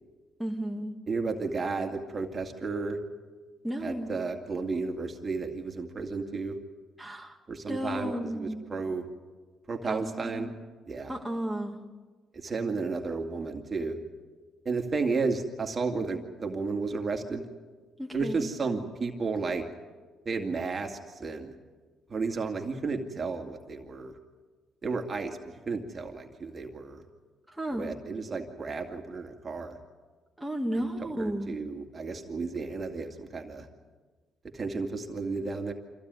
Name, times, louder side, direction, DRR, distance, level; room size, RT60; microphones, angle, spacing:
voice 1, 0.4-1.0 3.6-4.1 7.0-7.4 7.7-8.6 9.8-10.5 11.1-11.8 15.9-16.0 18.0-18.4 27.5-27.9 30.4-31.5, equal, 5° right, -1 dB, 2.2 m, -33 dB
voice 2, 1.1-3.0 3.8-6.6 7.5-9.0 9.7-10.5 10.9-11.1 12.3-14.0 14.6-17.5 18.1-19.7 20.3-21.5 22.1-24.1 24.8-27.0 27.7-29.8 31.2-33.7 34.5-35.7, right 4 dB, 35° right, 3 dB, 2.3 m, -33 dB
25.5 x 15.5 x 9.6 m, 1.4 s
cardioid pair, 90°, 0 cm